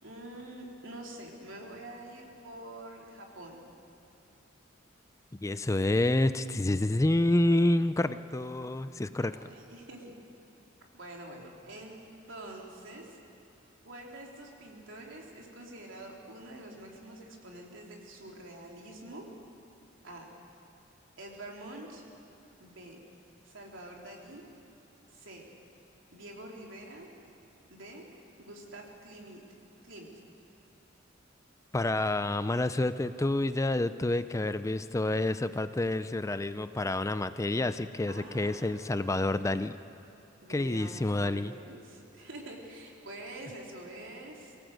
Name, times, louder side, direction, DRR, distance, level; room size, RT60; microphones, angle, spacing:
voice 1, 0.0-3.6 9.2-10.2 10.9-12.0 12.3-13.2 13.8-19.3 20.0-20.3 21.2-22.0 22.6-23.0 23.4-24.4 25.1-25.5 26.1-27.1 27.7-28.0 28.4-29.4 29.8-30.1 38.1-38.8 40.4-44.6, right 1 dB, 80° right, -1 dB, 3.6 m, -46 dB
voice 2, 5.4-9.3 31.7-39.7 40.5-41.5, left 2 dB, 15° left, 12 dB, 0.4 m, -28 dB
24.0 x 17.0 x 7.9 m, 2.9 s
head